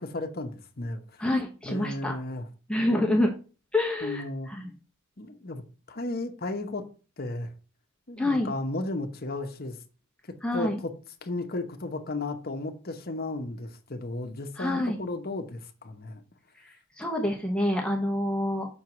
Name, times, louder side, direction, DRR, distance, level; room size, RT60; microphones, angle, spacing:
voice 1, 0.0-1.0 1.7-2.5 4.0-4.5 5.2-5.6 5.9-6.9 7.2-7.5 8.1-9.8 10.5-10.9 11.2-16.2, left 2 dB, 45° left, 1.1 m, -34 dB
voice 2, 1.2-2.1 2.7-3.3 3.7-4.7 8.2-8.5 10.4-10.8 14.6-15.0 16.6-18.7, left 1 dB, 5° left, 1.0 m, -27 dB
6.4 x 4.7 x 5.9 m
head